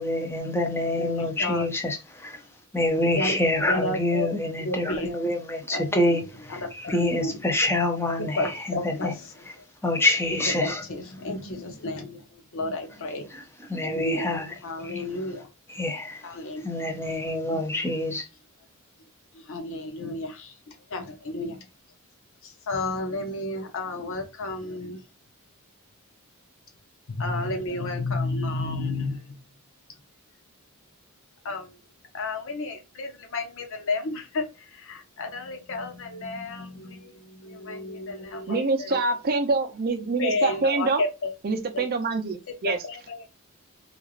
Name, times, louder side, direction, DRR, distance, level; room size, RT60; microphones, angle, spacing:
voice 1, 0.0-2.4 2.7-9.1 9.8-10.8 13.7-14.5 15.7-16.2 16.6-18.2, left 1 dB, 10° left, 0.7 m, -26 dB
voice 2, 1.0-1.8 3.1-4.3 4.6-5.1 5.7-7.5 8.2-9.5 10.3-12.2 12.5-13.3 13.8-15.5 16.2-16.9 17.5-17.8 19.3-21.6 22.4-25.0 27.1-29.4 31.4-31.8 32.1-39.2 40.2-41.4 41.7-41.9 42.6-43.2, left 2 dB, 65° left, 0.7 m, -32 dB
voice 3, 38.5-41.0 41.4-42.8, right 3 dB, 45° right, 0.5 m, -25 dB
3.1 x 2.4 x 2.3 m
head